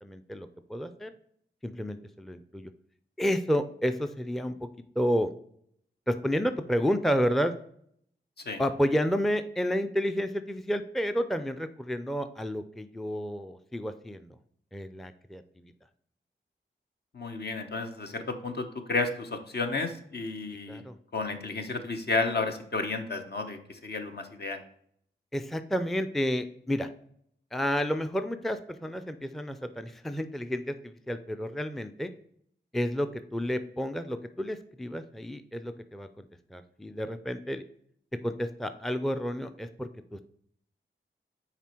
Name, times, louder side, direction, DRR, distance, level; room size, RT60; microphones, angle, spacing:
voice 1, 0.0-1.1 1.6-2.7 3.2-4.6 5.0-5.3 6.1-7.5 8.6-14.3 14.7-15.7 20.7-21.0 25.3-26.9 27.5-32.1 32.7-37.6 38.2-40.2, equal, ahead, 10 dB, 0.5 m, -30 dB
voice 2, 17.1-20.8 21.1-24.6, left 3 dB, 55° left, 5 dB, 1.0 m, -32 dB
5.9 x 4.1 x 4.5 m, 0.68 s
cardioid pair, 45°, 20 cm